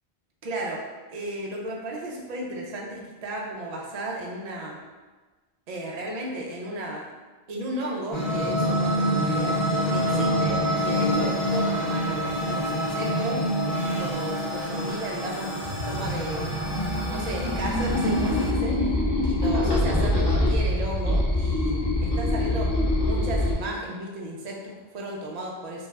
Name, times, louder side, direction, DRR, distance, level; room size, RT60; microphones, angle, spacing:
voice 1, 0.4-0.8 1.1-4.8 5.7-7.0 7.5-9.5 9.9-13.4 13.8-16.5 17.1-18.9 19.2-22.7 23.1-25.9, right 1 dB, 50° right, -1 dB, 0.5 m, -34 dB
sound 1, 8.1-18.5, equal, 70° left, 1.1 m, -27 dB
sound 2, 15.6-23.5, left 1 dB, 30° left, 0.6 m, -25 dB
2.6 x 2.2 x 3.1 m, 1.3 s
omnidirectional pair, 1.1 m